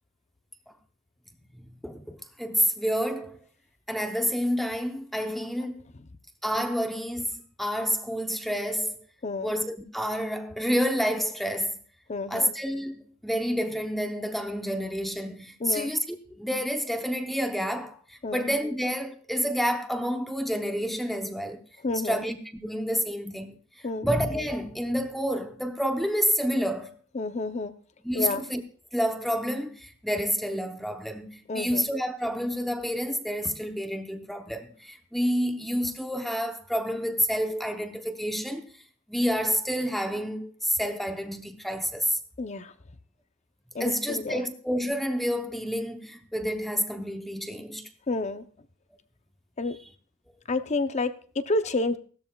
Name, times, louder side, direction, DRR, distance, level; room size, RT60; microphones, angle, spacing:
voice 1, 1.8-3.4 3.9-5.8 6.4-9.0 9.4-11.8 12.3-21.6 22.0-22.4 22.6-23.6 24.0-27.0 28.0-28.6 28.9-38.6 39.1-42.2 43.8-47.9, equal, ahead, 0.8 m, -29 dB
voice 2, 12.1-12.5 15.6-15.9 18.2-18.5 21.8-22.3 23.8-24.1 27.1-27.7 28.1-28.4 31.5-31.8 42.4-42.7 43.7-44.4 48.1-48.4 49.6-49.8 50.5-52.0, left 3 dB, 35° left, 0.6 m, -29 dB
17.0 x 13.0 x 2.3 m
head